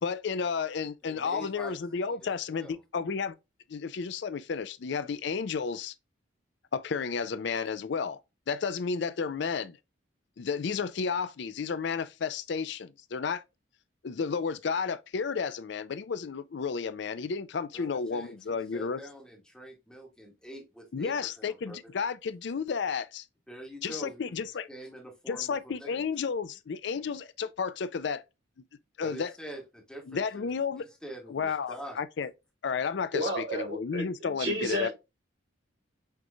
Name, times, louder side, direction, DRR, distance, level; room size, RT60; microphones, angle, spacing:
voice 1, 0.0-3.4 3.7-5.9 6.7-8.2 8.5-9.8 10.4-13.4 14.0-19.0 20.9-23.2 23.8-24.7 25.3-28.2 29.0-29.3 30.1-30.9 31.3-32.3 32.6-34.9, left 5 dB, 60° left, 0.4 m, -32 dB
voice 2, 1.0-2.8 17.7-21.8 23.5-24.3 24.7-26.0 29.0-30.5 30.8-32.0, right 1 dB, 5° left, 1.4 m, -45 dB
voice 3, 33.1-34.9, right 1 dB, 65° right, 2.9 m, -32 dB
6.5 x 3.0 x 2.2 m
head